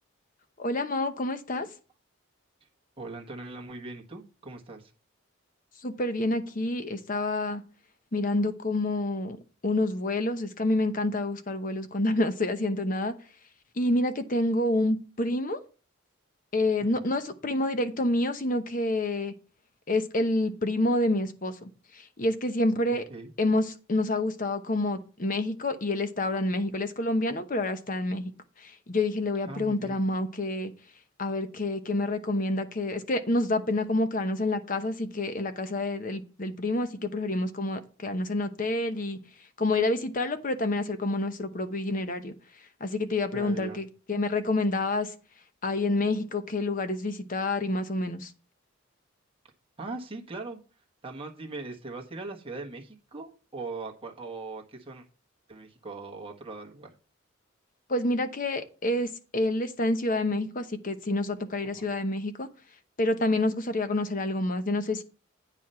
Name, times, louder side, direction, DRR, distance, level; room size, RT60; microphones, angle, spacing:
voice 1, 0.6-1.7 5.8-7.6 8.1-9.4 9.6-13.1 13.7-15.6 16.5-19.3 19.9-23.0 23.4-28.3 28.6-30.7 31.2-45.1 45.6-48.3 57.9-62.5 63.0-65.0, left 2 dB, 40° left, 0.9 m, -28 dB
voice 2, 3.0-4.9 16.8-16.9 23.1-23.3 29.5-30.0 43.3-43.8 49.8-50.6 51.0-55.0 55.5-56.9 61.6-61.9, right 3 dB, 25° right, 1.4 m, -40 dB
9.0 x 4.8 x 5.6 m
head